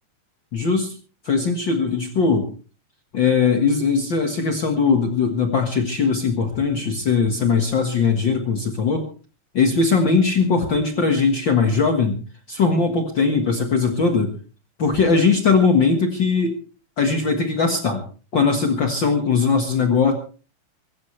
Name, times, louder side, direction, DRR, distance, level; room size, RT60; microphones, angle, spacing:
voice 1, 0.5-0.9 1.2-2.5 3.1-9.1 9.5-12.2 12.5-14.3 14.8-16.6 17.0-18.0 18.3-20.1, left 5 dB, 85° left, 4 dB, 1.0 m, -20 dB
24.5 x 15.0 x 3.3 m, 0.37 s
omnidirectional pair, 4.8 m